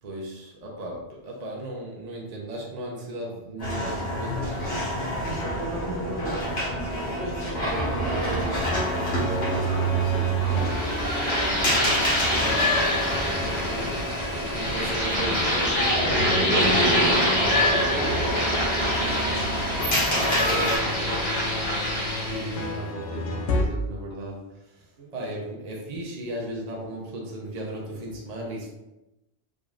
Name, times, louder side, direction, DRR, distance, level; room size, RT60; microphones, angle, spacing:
voice 1, 0.0-4.9 6.8-21.4 21.9-28.7, right 1 dB, 40° right, -2 dB, 0.9 m, -37 dB
sound 1, 3.6-20.8, equal, 60° left, 1.9 m, -27 dB
voice 2, 4.9-6.6 14.2-14.3 22.5-22.6 25.0-25.1, right 2 dB, 75° right, -4 dB, 1.6 m, -36 dB
sound 2, 8.6-23.6, right 1 dB, 75° left, 1.0 m, -32 dB
sound 3, 10.5-22.7, equal, 25° left, 1.4 m, -26 dB
5.1 x 3.8 x 2.5 m, 0.95 s
omnidirectional pair, 1.2 m